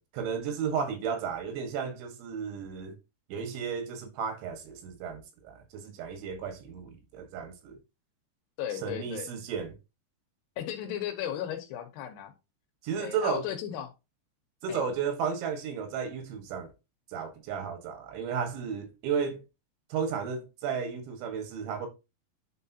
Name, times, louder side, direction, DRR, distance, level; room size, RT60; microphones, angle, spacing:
voice 1, 0.0-3.0 3.3-7.8 8.8-9.8 12.8-13.5 14.6-16.7 17.1-19.4 19.9-21.9, right 6 dB, 90° right, 3.8 m, -33 dB
voice 2, 8.6-9.3 10.6-12.3 13.0-13.9 14.7-14.8, left 10 dB, 75° left, 2.8 m, -35 dB
10.5 x 4.4 x 2.8 m
omnidirectional pair, 5.2 m